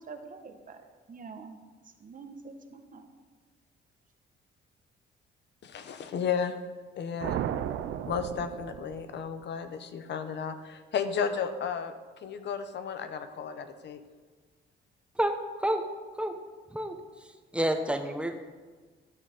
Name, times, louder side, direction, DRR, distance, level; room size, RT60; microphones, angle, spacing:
voice 1, 0.1-0.8 1.1-1.6 2.0-3.0, right 4 dB, 45° right, 6 dB, 1.1 m, -45 dB
voice 2, 5.6-6.5 7.0-7.4 8.1-11.9 12.2-14.0, left 6 dB, 60° left, 9 dB, 0.9 m, -33 dB
sound 1, 7.2-9.4, right 10 dB, 75° right, 0.5 m, -34 dB
voice 3, 17.2-18.4, right 1 dB, 5° right, 6 dB, 1.1 m, -29 dB
12.5 x 6.7 x 5.1 m, 1.4 s
cardioid pair, 90°, 20 cm